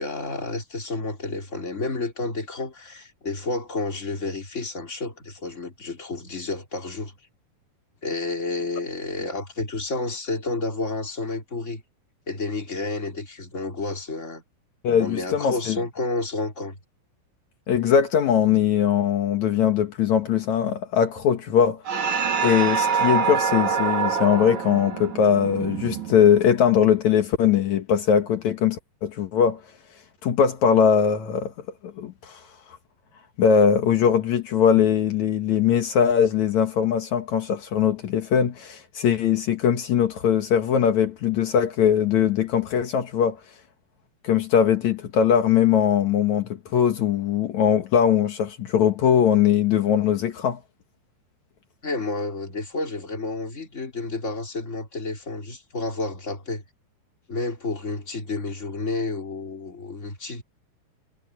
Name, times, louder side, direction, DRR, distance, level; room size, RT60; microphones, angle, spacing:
voice 1, 0.0-7.1 8.0-11.8 12.3-14.4 15.0-16.8 51.8-56.6 57.3-60.4, left 3 dB, 15° left, 3.0 m, -30 dB
voice 2, 14.8-15.8 17.7-21.8 22.4-29.6 30.2-31.5 31.8-32.4 32.7-32.8 33.4-43.4 44.2-50.6, left 8 dB, 85° left, 1.6 m, -21 dB
sound 1, 21.9-26.6, right 6 dB, 40° right, 3.4 m, -25 dB
omnidirectional pair, 5.8 m